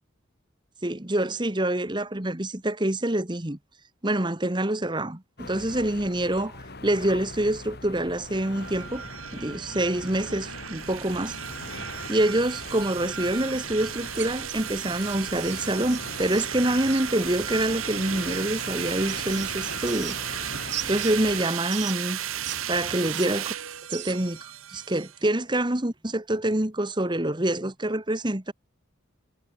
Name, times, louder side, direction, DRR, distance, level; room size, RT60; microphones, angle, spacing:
voice 1, 0.8-3.6 4.0-9.0 9.3-11.4 12.1-20.2 20.9-22.2 22.7-23.5 23.9-28.5, right 1 dB, 20° right, 1.4 m, -26 dB
sound 1, 5.4-21.4, left 2 dB, 50° left, 3.0 m, -41 dB
sound 2, 8.4-25.2, right 9 dB, 85° right, 1.9 m, -35 dB
sound 3, 14.1-17.1 18.5-20.4 20.7-22.6 22.8-24.4, right 12 dB, 55° right, 2.7 m, -39 dB
head